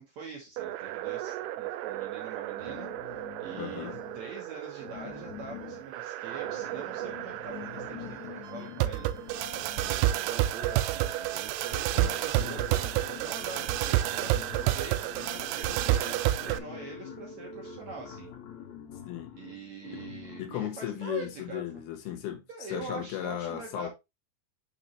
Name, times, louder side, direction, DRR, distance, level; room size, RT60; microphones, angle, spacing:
voice 1, 0.0-12.8 13.2-14.4 14.7-18.3 19.4-21.6 22.5-23.9, right 5 dB, 70° right, 1.7 m, -44 dB
sound 1, 0.6-16.6, right 14 dB, 90° right, 2.6 m, -31 dB
sound 2, 2.5-4.3 4.8-10.5 11.4-11.5 11.8-20.7, left 10 dB, 60° left, 2.3 m, -46 dB
voice 2, 3.5-4.0 12.0-12.2 19.1-19.3 19.9-20.0 20.4-22.4 22.7-23.9, left 11 dB, 75° left, 3.0 m, -36 dB
sound 3, 3.9-18.3, right 6 dB, 50° right, 2.3 m, -50 dB
6.0 x 5.9 x 3.0 m
omnidirectional pair, 4.6 m